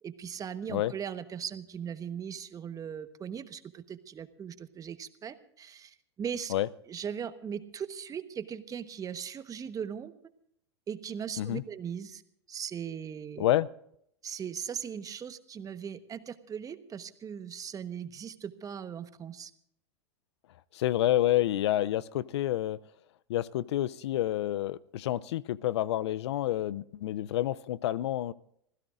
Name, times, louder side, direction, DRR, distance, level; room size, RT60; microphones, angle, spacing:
voice 1, 0.0-6.5 6.9-10.1 10.9-12.2 12.5-13.5 14.2-19.5, right 8 dB, 25° right, 11 dB, 1.2 m, -39 dB
voice 2, 13.4-13.7 20.7-22.8 23.3-28.3, left 13 dB, 70° left, 20 dB, 0.5 m, -28 dB
26.5 x 16.0 x 2.5 m, 0.72 s
hypercardioid pair, 105°, 15 cm